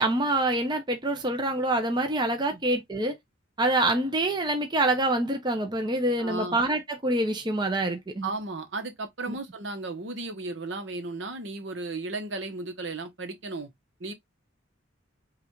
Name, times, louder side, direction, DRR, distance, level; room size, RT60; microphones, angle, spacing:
voice 1, 0.0-3.2 3.6-8.3 9.3-9.4, right 2 dB, 20° right, 0.7 m, -26 dB
voice 2, 6.2-6.6 8.2-13.7 14.0-14.1, right 2 dB, 65° right, 1.0 m, -35 dB
5.4 x 2.5 x 3.1 m
head